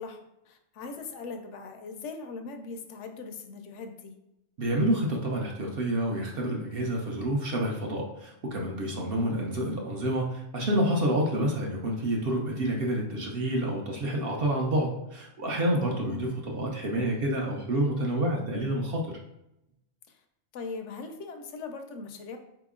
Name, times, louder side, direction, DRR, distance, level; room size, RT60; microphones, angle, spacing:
voice 1, 0.0-4.2 15.9-16.2 20.1-20.2 20.5-22.4, left 4 dB, 65° left, 6 dB, 0.8 m, -40 dB
voice 2, 4.6-19.1, right 1 dB, 55° right, -1 dB, 0.7 m, -28 dB
4.0 x 2.9 x 3.6 m, 0.86 s
omnidirectional pair, 1.4 m